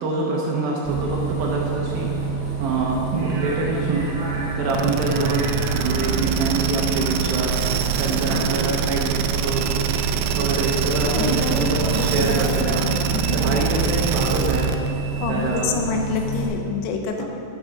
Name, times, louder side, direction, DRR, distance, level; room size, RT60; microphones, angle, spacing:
voice 1, 0.0-2.1 2.6-4.1 4.6-5.4 5.7-7.5 8.0-9.8 10.4-12.9 13.3-14.7 15.3-15.8 17.2-17.3, right 3 dB, 70° right, -3 dB, 2.4 m, -25 dB
Bus, 0.8-16.5, right 4 dB, 55° right, 3.7 m, -27 dB
sound 1, 4.7-14.9, right 7 dB, 85° right, 2.3 m, -25 dB
voice 2, 8.3-8.6 10.9-12.5 13.1-13.5 15.2-17.3, left 5 dB, 85° left, 4 dB, 3.2 m, -28 dB
11.0 x 7.3 x 5.1 m, 2.6 s
omnidirectional pair, 5.2 m